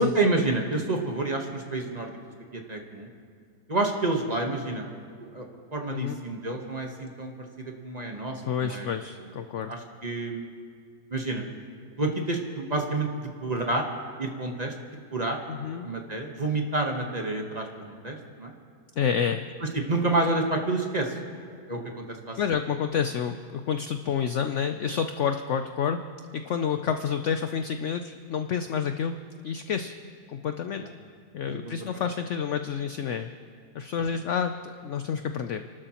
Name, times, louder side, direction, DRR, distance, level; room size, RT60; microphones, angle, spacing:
voice 1, 0.0-2.1 2.5-3.1 3.7-4.9 5.2-5.5 5.7-7.3 7.6-8.9 9.7-10.5 11.1-11.4 12.0-13.8 14.2-14.7 15.1-15.4 15.8-18.5 19.9-22.4 30.7-30.9 31.4-32.0, right 2 dB, 30° right, 2 dB, 1.1 m, -29 dB
voice 2, 8.5-9.7 15.5-15.9 19.0-19.5 22.4-26.0 26.3-29.1 29.4-29.9 30.3-30.8 31.3-33.3 33.7-35.7, left 7 dB, 75° left, 8 dB, 0.6 m, -29 dB
30.0 x 12.5 x 2.9 m, 2.2 s
omnidirectional pair, 1.8 m